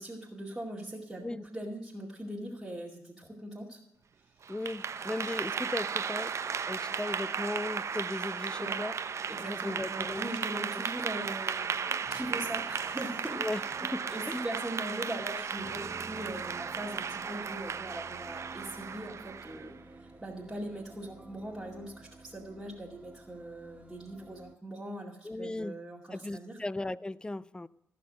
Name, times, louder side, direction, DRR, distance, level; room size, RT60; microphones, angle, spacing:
voice 1, 0.0-3.8 8.6-8.8 9.3-13.6 14.1-26.6, right 1 dB, 5° right, -5 dB, 2.3 m, -41 dB
Clapping / Applause, 4.4-19.7, right 6 dB, 50° right, 0.6 m, -35 dB
voice 2, 4.5-6.3 6.7-9.0 9.4-10.3 10.7-10.9 13.3-14.4 25.2-25.8 26.1-27.7, left 2 dB, 15° left, 19 dB, 0.4 m, -37 dB
sound 1, 6.3-24.6, right 2 dB, 20° right, 1.1 m, -53 dB
14.5 x 5.9 x 7.5 m, 0.86 s
cardioid pair, 65°, 6 cm